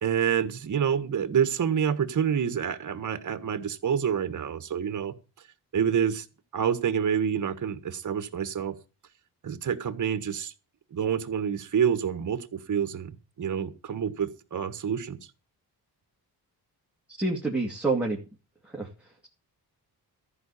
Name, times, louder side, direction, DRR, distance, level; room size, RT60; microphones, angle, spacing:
voice 1, 0.0-5.1 5.7-6.2 6.5-8.7 9.4-10.5 10.9-13.1 13.4-15.2, right 8 dB, 50° right, 1.4 m, -27 dB
voice 2, 17.2-18.2 18.6-19.3, right 3 dB, 5° right, 2.1 m, -28 dB
14.0 x 5.0 x 8.3 m
wide cardioid pair, 140°, 39 cm